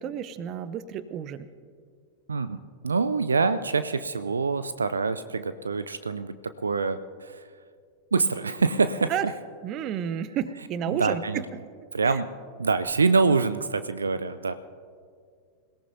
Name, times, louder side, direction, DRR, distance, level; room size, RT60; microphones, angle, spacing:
voice 1, 0.0-1.5 9.1-9.3 9.6-11.6 12.0-12.2, right 9 dB, 35° right, 15 dB, 0.7 m, -31 dB
voice 2, 2.3-7.4 8.1-9.1 10.9-11.4 11.9-12.3 12.6-14.5, right 4 dB, 75° right, 12 dB, 0.4 m, -25 dB
26.5 x 17.5 x 2.7 m, 2.1 s
figure-of-eight pair, 90°, 0 cm